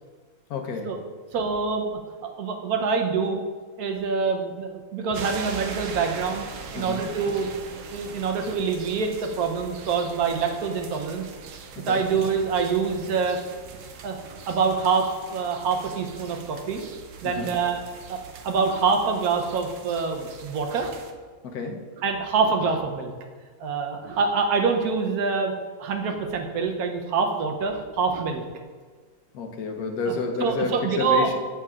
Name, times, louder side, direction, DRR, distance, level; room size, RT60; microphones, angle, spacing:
voice 1, 0.5-0.9 6.8-7.0 11.8-12.0 17.2-17.5 21.4-21.8 29.3-31.3, left 3 dB, 90° left, 3 dB, 1.3 m, -30 dB
voice 2, 1.3-3.4 3.8-6.5 6.7-11.3 11.9-13.4 14.0-16.8 17.2-17.8 18.1-18.2 18.4-20.9 22.0-23.1 23.6-25.5 25.8-28.4 30.1-30.2 30.4-31.3, right 5 dB, 85° right, 4 dB, 1.3 m, -25 dB
sound 1, 5.1-21.1, right 6 dB, 65° right, 0.9 m, -42 dB
8.5 x 7.1 x 2.4 m, 1.5 s
omnidirectional pair, 1.6 m